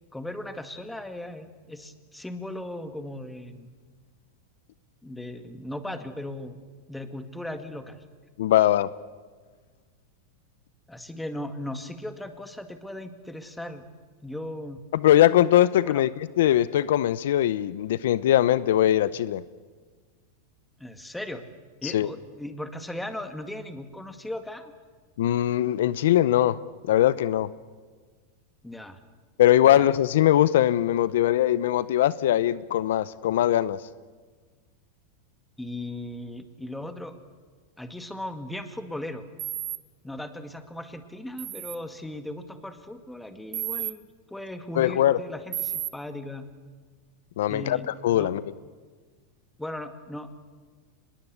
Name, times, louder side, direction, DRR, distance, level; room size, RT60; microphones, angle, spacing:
voice 1, 0.1-3.7 5.0-6.6 6.9-8.0 10.9-13.8 14.2-14.9 15.8-16.0 20.8-21.5 21.8-24.7 28.6-29.0 29.6-29.9 35.6-37.1 37.8-39.3 40.0-44.0 44.3-46.5 47.5-48.3 49.6-50.5, left 1 dB, 5° left, 8 dB, 2.0 m, -37 dB
voice 2, 8.4-8.9 14.9-16.1 16.4-19.4 21.8-22.1 25.2-26.6 26.9-27.5 29.4-33.8 44.8-45.2 47.4-47.8 48.0-48.4, left 12 dB, 75° left, 17 dB, 0.7 m, -21 dB
sound 1, 39.4-39.8 41.4-41.8 43.5-43.9 45.5-45.9, right 13 dB, 35° right, 1.0 m, -31 dB
24.5 x 21.0 x 8.3 m, 1.5 s
supercardioid pair, 125°, 0 cm